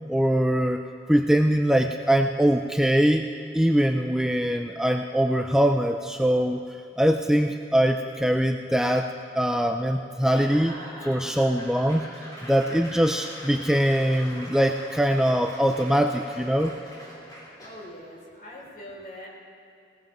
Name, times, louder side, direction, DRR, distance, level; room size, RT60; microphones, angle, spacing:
voice 1, 0.1-0.8 1.1-3.2 3.5-10.8 11.0-12.1 12.5-16.7, equal, 5° right, 5 dB, 0.3 m, -22 dB
Laughter / Applause / Crowd, 10.1-17.9, equal, 20° left, 4.3 m, -43 dB
voice 2, 17.6-19.3, equal, 50° left, -5 dB, 4.2 m, -42 dB
19.5 x 18.5 x 3.0 m, 2.5 s
head